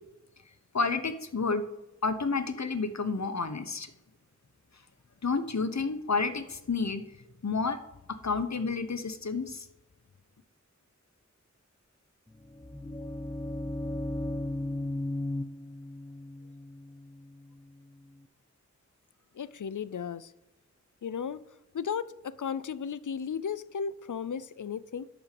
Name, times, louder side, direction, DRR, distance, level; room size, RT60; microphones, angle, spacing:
voice 1, 0.7-1.7 2.0-3.9 5.2-7.0 7.4-7.8 8.1-9.6, left 4 dB, 65° left, 11 dB, 0.9 m, -30 dB
sound 1, 12.3-18.2, left 1 dB, 10° left, 0.6 m, -36 dB
voice 2, 19.3-20.3 21.0-21.4 21.7-25.1, left 7 dB, 85° left, 18 dB, 0.5 m, -35 dB
11.0 x 6.0 x 7.6 m, 0.92 s
wide cardioid pair, 50°, 30 cm